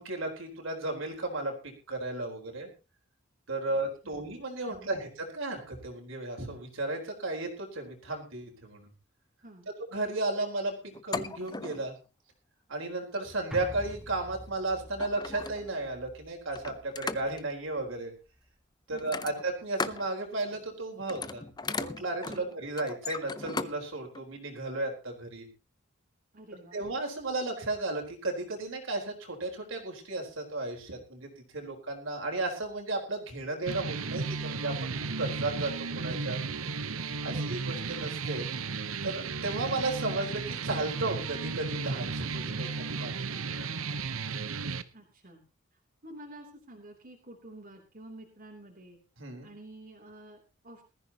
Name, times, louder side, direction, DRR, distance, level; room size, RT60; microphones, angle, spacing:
voice 1, 0.0-2.7 3.5-8.9 9.9-12.0 12.7-18.1 18.9-21.5 21.8-25.5 26.7-34.9 35.2-36.4 37.2-38.5 39.0-43.8 49.2-49.5, right 2 dB, 70° right, 1 dB, 4.2 m, -34 dB
voice 2, 3.7-4.3 4.6-5.0 9.4-9.7 18.9-19.3 22.2-22.5 26.3-26.8 37.3-37.6 44.9-45.4 46.0-49.0 49.4-50.8, right 1 dB, 45° right, -1 dB, 3.2 m, -50 dB
sound 1, 10.9-11.9 13.0-13.3 14.4-14.5 14.9-15.8 16.5-17.5 19.0-20.1 20.4-20.7 21.0-23.8 24.1-24.2, left 4 dB, 20° left, 0.6 m, -37 dB
sound 2, 13.5-18.0 18.3-18.4, equal, 5° right, 1.6 m, -46 dB
sound 3, 33.7-44.8, right 4 dB, 90° right, 1.0 m, -34 dB
20.5 x 14.5 x 2.9 m, 0.30 s
head